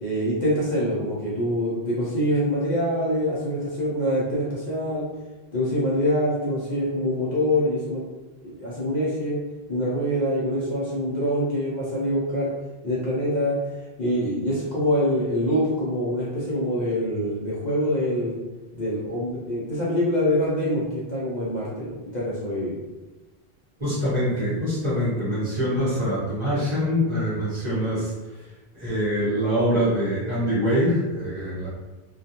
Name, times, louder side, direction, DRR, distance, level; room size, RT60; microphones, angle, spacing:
voice 1, 0.0-5.1 5.5-8.1 8.4-9.4 9.7-12.5 12.8-13.6 14.0-18.4 18.7-22.7, equal, 50° left, -7 dB, 0.7 m, -25 dB
voice 2, 23.8-28.1 28.7-31.7, equal, 30° right, -9 dB, 0.8 m, -24 dB
2.3 x 2.2 x 2.7 m, 1.1 s
omnidirectional pair, 1.0 m